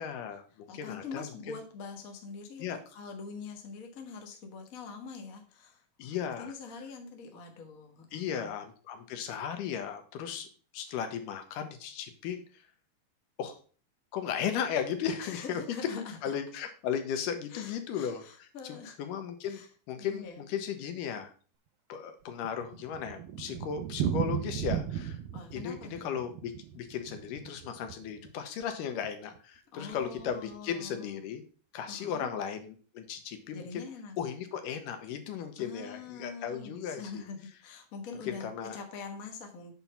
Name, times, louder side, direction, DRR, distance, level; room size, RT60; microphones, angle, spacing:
voice 1, 0.0-1.2 2.6-2.8 6.0-6.5 8.1-12.7 13.4-13.6 14.1-15.6 16.0-19.6 19.9-21.3 21.9-25.2 25.5-31.4 31.7-33.8 34.2-37.2 38.3-38.8, left 8 dB, 85° left, 7 dB, 2.6 m, -36 dB
voice 2, 0.7-8.5 15.2-16.3 17.5-19.0 19.5-20.4 25.3-26.2 29.7-31.2 31.9-32.3 33.5-34.2 35.6-39.7, left 5 dB, 70° left, 4 dB, 0.8 m, -44 dB
Thunder, 22.1-28.4 28.6-28.7 29.0-29.1 29.4-29.5 30.0-30.3, right 9 dB, 85° right, 2.2 m, -36 dB
7.0 x 4.5 x 5.3 m, 0.39 s
omnidirectional pair, 3.7 m